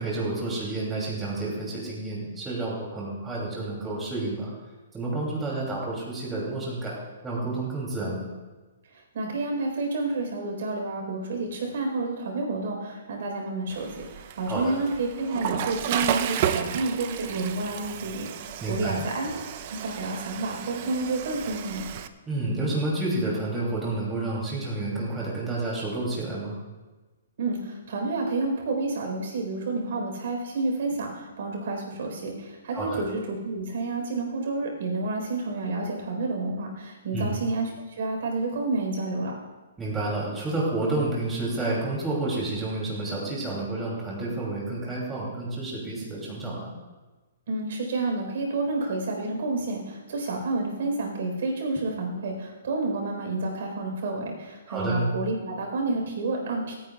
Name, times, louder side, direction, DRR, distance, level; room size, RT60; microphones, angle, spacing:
voice 1, 0.0-4.5 4.9-7.0 7.2-8.3 14.5-14.8 18.6-19.0 22.3-26.6 32.7-33.0 37.1-37.3 39.8-46.7 54.7-55.1, right 2 dB, 10° right, -5 dB, 2.9 m, -30 dB
voice 2, 8.9-19.3 19.7-21.9 27.4-39.3 47.5-56.7, right 2 dB, 60° right, 1 dB, 4.2 m, -30 dB
Water / Toilet flush, 13.7-22.1, right 9 dB, 40° right, 0.6 m, -32 dB
26.5 x 9.4 x 2.4 m, 1.2 s
hypercardioid pair, 155°, 0 cm